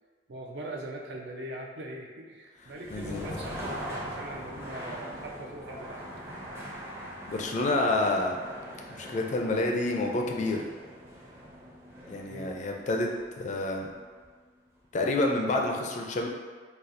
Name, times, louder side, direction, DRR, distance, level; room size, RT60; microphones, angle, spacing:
voice 1, 0.3-6.1 12.3-12.6, right 1 dB, 65° right, 0 dB, 0.5 m, -41 dB
sound 1, 2.6-14.5, equal, 15° right, 0.5 m, -42 dB
voice 2, 2.9-3.3 7.3-8.4 8.9-10.6 12.1-13.1 13.4-13.9 14.9-16.3, left 2 dB, 40° left, 1 dB, 0.4 m, -28 dB
4.1 x 2.3 x 2.5 m, 1.5 s
head